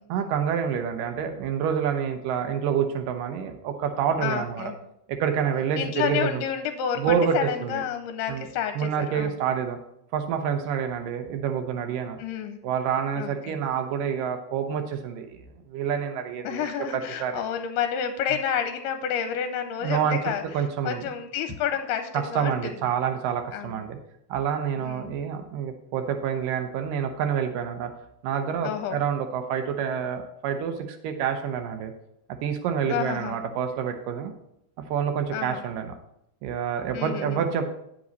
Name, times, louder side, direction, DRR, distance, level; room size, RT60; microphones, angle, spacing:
voice 1, 0.1-4.7 5.1-6.4 7.0-7.8 8.3-8.5 8.8-9.8 10.1-12.2 12.6-15.4 15.7-16.7 16.9-17.4 19.8-20.2 20.5-21.0 22.1-24.0 24.3-27.9 28.2-31.9 32.4-34.3 34.9-36.0 36.4-37.7, right 8 dB, 80° right, 7 dB, 2.0 m, -27 dB
voice 2, 4.2-4.8 5.8-7.0 7.3-9.3 12.2-12.6 13.2-13.6 16.4-20.4 20.8-22.5 23.5-23.8 24.8-25.1 28.6-29.0 32.9-33.4 35.3-35.6 36.9-37.4, left 8 dB, 85° left, 7 dB, 2.6 m, -30 dB
9.7 x 7.7 x 4.0 m, 0.78 s
omnidirectional pair, 4.7 m